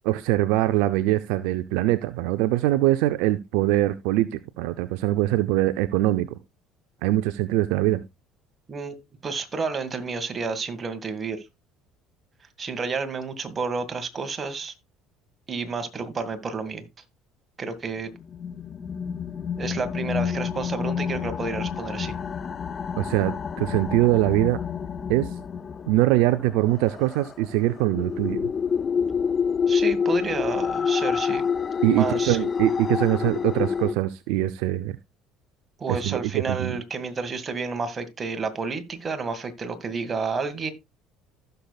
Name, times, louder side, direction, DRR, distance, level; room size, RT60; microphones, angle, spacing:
voice 1, 0.0-6.3 7.0-8.0 23.0-24.6 25.1-25.3 25.9-28.5 31.8-35.0 35.9-36.8, right 16 dB, 75° right, 0.5 m, -23 dB
voice 2, 8.7-11.5 12.6-14.7 15.5-16.9 17.6-18.1 19.6-22.2 29.7-31.4 31.9-32.4 35.8-40.7, right 4 dB, 35° right, 1.9 m, -30 dB
sound 1, 18.2-33.9, left 6 dB, 40° left, 0.5 m, -28 dB
15.0 x 6.8 x 2.4 m
hypercardioid pair, 70°, 0 cm